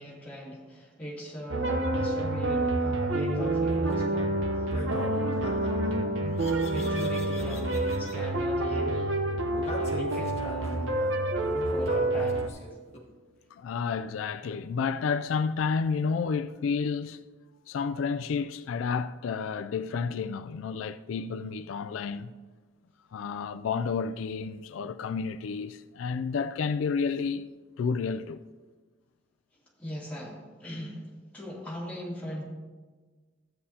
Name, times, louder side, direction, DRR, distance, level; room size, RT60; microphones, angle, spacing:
voice 1, 0.0-4.4 4.9-5.4 6.2-6.4 6.7-9.2 9.7-10.9 11.7-12.5 29.8-32.4, equal, 10° left, 2.7 m, -39 dB
sound 1, 1.5-12.5, right 2 dB, 75° right, 0.8 m, -28 dB
sound 2, 3.7-3.9 4.7-5.9 6.4-8.2 9.5-13.0, left 2 dB, 35° left, 1.4 m, -42 dB
voice 2, 13.5-17.2 17.7-22.3 23.1-27.5 27.8-28.4, left 5 dB, 85° left, 0.3 m, -30 dB
13.0 x 8.8 x 2.8 m
head